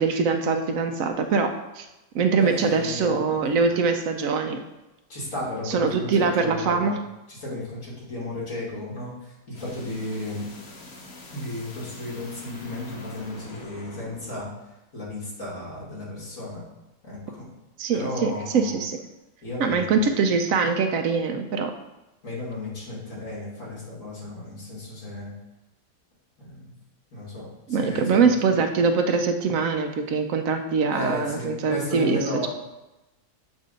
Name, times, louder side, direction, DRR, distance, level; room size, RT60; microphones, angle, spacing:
voice 1, 0.0-1.9 2.1-4.6 5.7-7.0 17.8-19.0 19.6-21.7 27.7-32.5, right 5 dB, 70° right, 6 dB, 0.9 m, -23 dB
voice 2, 2.4-3.8 5.1-6.9 7.3-10.4 11.3-14.5 14.9-16.6 17.0-17.5 17.9-18.8 19.4-20.1 22.2-25.3 26.4-26.7 27.1-28.4 30.9-32.5, left 2 dB, 55° left, -6 dB, 2.7 m, -34 dB
sound 1, 9.5-14.4, left 2 dB, 70° left, 1.5 m, -44 dB
7.3 x 2.6 x 5.0 m, 0.98 s
omnidirectional pair, 1.6 m